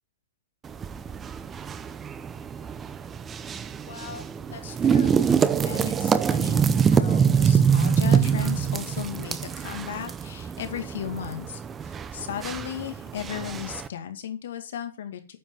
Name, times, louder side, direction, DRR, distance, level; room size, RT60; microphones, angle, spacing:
sound 1, 0.6-13.9, right 7 dB, 15° right, 0.6 m, -25 dB
voice 1, 3.9-15.4, left 9 dB, 65° left, 7 dB, 2.2 m, -36 dB
9.2 x 5.8 x 5.6 m, 0.35 s
hypercardioid pair, 155°, 0 cm